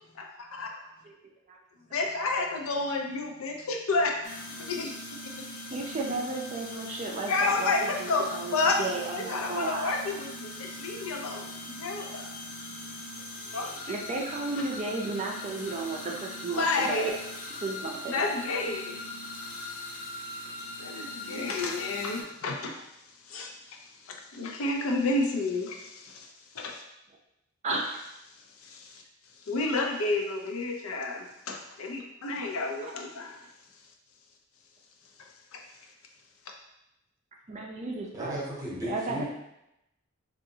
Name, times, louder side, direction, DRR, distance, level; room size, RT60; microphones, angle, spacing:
voice 1, 0.2-0.7 1.9-5.5 7.3-8.8 9.1-12.3 12.7-12.9 13.5-13.8 16.5-17.2 18.1-19.0 20.8-22.8 23.3-23.8 24.0-26.8 27.7-27.8 28.6-29.0 29.5-33.4 35.5-35.6, left 3 dB, 90° left, 2 dB, 0.5 m, -31 dB
sound 1, 4.2-22.2, left 1 dB, 40° left, 0.5 m, -41 dB
voice 2, 5.7-10.0 13.9-17.2 17.6-18.3 27.6-27.9 32.8-32.9 37.5-38.4 38.8-39.3, right 3 dB, 35° right, 0 dB, 0.4 m, -34 dB
voice 3, 38.1-39.3, equal, 15° right, -5 dB, 0.8 m, -35 dB
3.7 x 2.4 x 2.7 m, 0.85 s
head